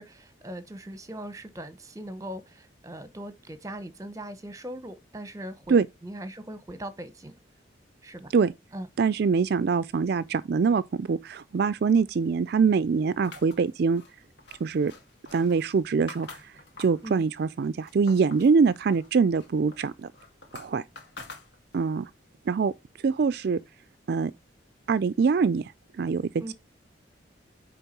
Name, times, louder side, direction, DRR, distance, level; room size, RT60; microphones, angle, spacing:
voice 1, 0.0-5.8 6.0-7.3 8.0-8.3 8.7-8.9 17.0-17.3 26.4-26.5, right 1 dB, 20° right, 0.9 m, -40 dB
voice 2, 9.0-14.0 14.6-14.9 15.3-16.5 16.8-20.1 20.5-20.8 21.7-22.1 22.5-22.7 23.0-23.6 24.1-24.3 24.9-25.7 26.0-26.3, right 5 dB, 60° right, 0.4 m, -24 dB
sound 1, 13.2-17.1 17.5-18.6 18.9-21.9, left 3 dB, 65° left, 2.1 m, -47 dB
9.3 x 3.5 x 5.2 m
head